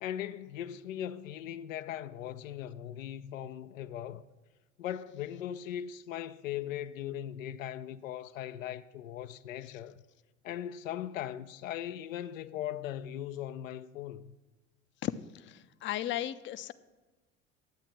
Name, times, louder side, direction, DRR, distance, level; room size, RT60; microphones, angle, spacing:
voice 1, 0.0-4.2 4.8-10.0 10.4-14.3, left 11 dB, 80° left, 0.5 m, -39 dB
voice 2, 15.0-16.7, left 12 dB, 30° left, 0.5 m, -36 dB
10.5 x 8.2 x 6.0 m
hypercardioid pair, 65°, 39 cm